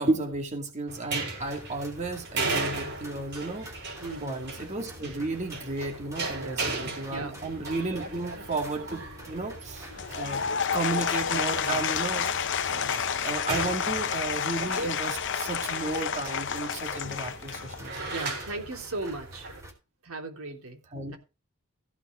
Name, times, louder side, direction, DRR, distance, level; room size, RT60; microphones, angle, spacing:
voice 1, 0.0-3.7 4.2-10.4 10.7-13.0 13.2-18.0 20.9-21.2, right 3 dB, 30° right, 2 dB, 2.3 m, -33 dB
sound 1, 0.9-19.6, right 3 dB, 55° right, 6.0 m, -37 dB
sound 2, 1.4-19.7, equal, 15° right, 3.8 m, -48 dB
voice 2, 4.0-4.4 6.4-6.7 7.1-7.4 11.6-11.8 18.0-19.5 20.0-20.8, right 2 dB, 70° right, 3 dB, 3.2 m, -37 dB
Applause / Crowd, 9.9-18.1, left 7 dB, 55° left, 0.8 m, -30 dB
15.5 x 5.9 x 5.1 m, 0.30 s
head